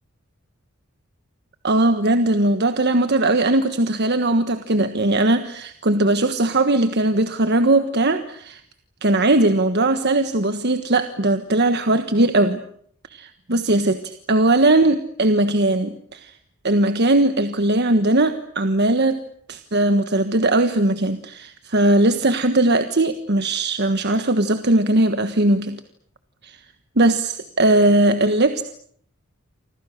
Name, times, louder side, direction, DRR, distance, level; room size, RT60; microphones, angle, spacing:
voice 1, 1.6-8.6 9.0-12.6 13.1-16.3 16.6-19.2 19.5-25.8 26.4-26.6 27.0-28.6, right 2 dB, 55° right, 9 dB, 1.4 m, -19 dB
28.5 x 26.0 x 6.6 m, 0.63 s
head